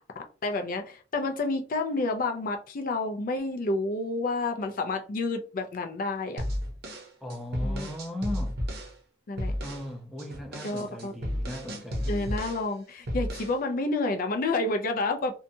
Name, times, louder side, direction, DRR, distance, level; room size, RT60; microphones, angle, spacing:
voice 1, 0.4-6.4 7.6-7.9 9.3-9.6 10.6-11.1 12.1-15.4, left 2 dB, 45° left, 0.4 m, -29 dB
sound 1, 6.4-8.9 9.4-9.9 10.2-12.7 13.1-13.6, equal, 55° right, 0.7 m, -33 dB
voice 2, 7.2-8.5 9.6-12.3, left 1 dB, ahead, 0.5 m, -37 dB
2.7 x 2.2 x 2.6 m
head